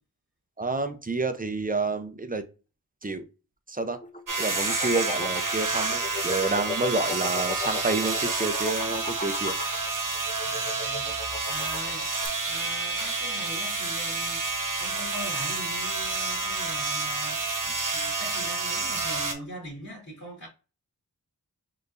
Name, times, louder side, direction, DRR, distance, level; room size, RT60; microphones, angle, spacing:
voice 1, 0.6-2.4 3.0-3.3 3.7-4.0 4.4-9.5, right 3 dB, 20° right, 0.7 m, -29 dB
sound 1, 3.8-12.3, left 4 dB, 20° left, 0.6 m, -37 dB
sound 2, 4.3-19.3, right 3 dB, 55° right, 1.2 m, -29 dB
voice 2, 10.4-11.2 11.5-12.1 12.4-14.4 14.8-20.5, equal, 50° left, 2.0 m, -41 dB
4.4 x 3.1 x 2.6 m
cardioid pair, 45°, 38 cm